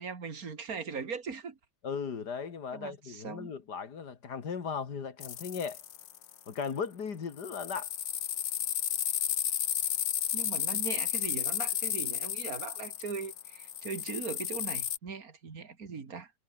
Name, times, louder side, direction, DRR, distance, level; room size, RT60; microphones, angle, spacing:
voice 1, 0.0-1.6 2.7-3.5 10.3-16.3, right 5 dB, 50° right, 2.8 m, -40 dB
voice 2, 1.8-5.8 6.5-7.9, left 6 dB, 65° left, 2.5 m, -37 dB
sound 1, 5.2-6.4 7.4-15.0, left 10 dB, 80° left, 1.9 m, -33 dB
omnidirectional pair, 2.0 m